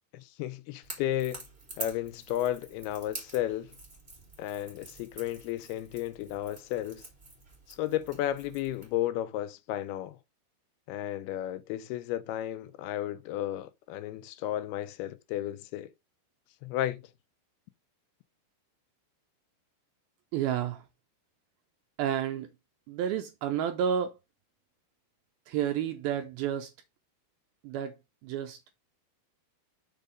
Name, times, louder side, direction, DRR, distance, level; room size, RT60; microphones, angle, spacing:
voice 1, 0.1-1.4 1.8-3.7 4.4-7.1 7.7-10.2 10.9-15.9 16.6-17.0, left 13 dB, 80° left, 2.4 m, -33 dB
Crackle / Crack, 0.8-8.9, right 2 dB, 15° right, 3.1 m, -47 dB
voice 2, 20.3-20.8 22.0-22.5 22.9-24.1 25.5-26.7 27.6-28.0 28.2-28.6, right 9 dB, 75° right, 2.3 m, -30 dB
6.7 x 4.6 x 5.1 m
omnidirectional pair, 4.7 m